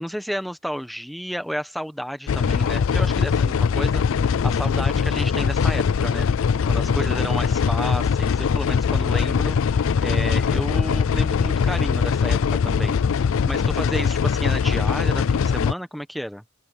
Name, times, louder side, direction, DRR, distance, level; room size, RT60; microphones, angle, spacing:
voice 1, 0.0-12.4 12.6-16.4, equal, ahead, 1.4 m, -32 dB
sound 1, 2.3-15.7, left 6 dB, 80° left, 0.4 m, -21 dB
open air
head